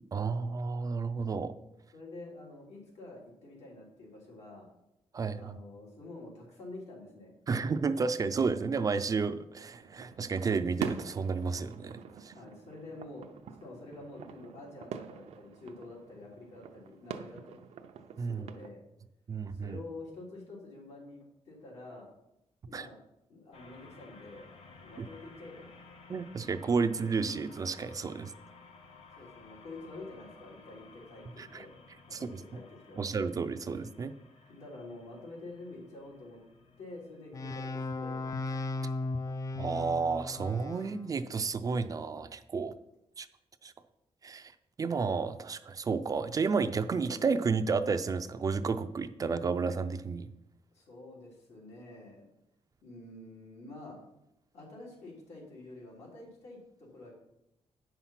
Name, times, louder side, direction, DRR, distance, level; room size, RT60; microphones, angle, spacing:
voice 1, 0.1-1.6 5.1-5.6 7.5-12.3 18.2-18.5 19.3-19.8 22.7-22.9 25.0-25.1 26.1-28.3 31.4-31.7 32.1-32.4 33.0-34.1 39.6-42.7 43.2-43.3 43.6-43.7 44.2-44.5 44.8-50.3, right 5 dB, 35° right, 10 dB, 0.5 m, -31 dB
voice 2, 1.9-4.7 5.4-7.3 12.3-13.3 13.6-17.6 18.1-18.8 19.5-22.1 22.7-23.0 23.3-24.5 24.8-25.7 29.2-31.7 32.1-33.0 34.5-36.4 36.8-38.2 50.7-52.2 52.8-54.0 54.5-57.1, left 2 dB, 80° left, -3 dB, 3.5 m, -48 dB
sound 1, 9.6-18.7, right 7 dB, 80° right, 0.7 m, -45 dB
sound 2, 23.5-40.1, left 4 dB, 60° left, 1.1 m, -56 dB
sound 3, 37.3-40.9, left 2 dB, 30° left, 0.4 m, -36 dB
8.9 x 5.8 x 5.7 m, 0.85 s
wide cardioid pair, 145°, 11 cm